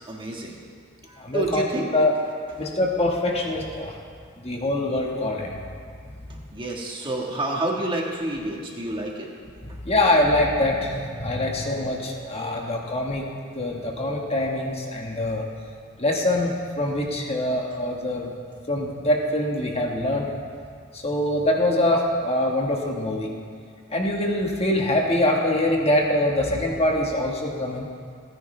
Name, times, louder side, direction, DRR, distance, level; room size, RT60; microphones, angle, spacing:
voice 1, 0.1-0.6 1.0-1.9 6.5-9.3, right 1 dB, 25° right, -1 dB, 1.5 m, -28 dB
voice 2, 1.2-2.1 2.6-3.9 4.4-5.5 6.3-6.4 9.8-13.2 13.5-15.4 16.0-18.3 18.7-20.3 20.9-23.3 23.9-27.9, left 1 dB, 30° left, 0 dB, 1.5 m, -24 dB
27.5 x 9.7 x 3.3 m, 2.1 s
head